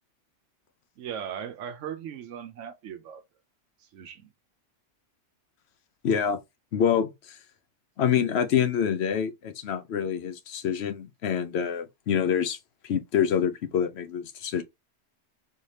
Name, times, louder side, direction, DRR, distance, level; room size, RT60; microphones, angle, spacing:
voice 1, 1.0-3.2 3.8-4.3, right 8 dB, 80° right, 0.9 m, -38 dB
voice 2, 6.0-6.4 6.7-7.1 8.0-12.6 12.8-14.6, left 8 dB, 65° left, 0.9 m, -26 dB
4.1 x 2.7 x 3.2 m
omnidirectional pair, 1.3 m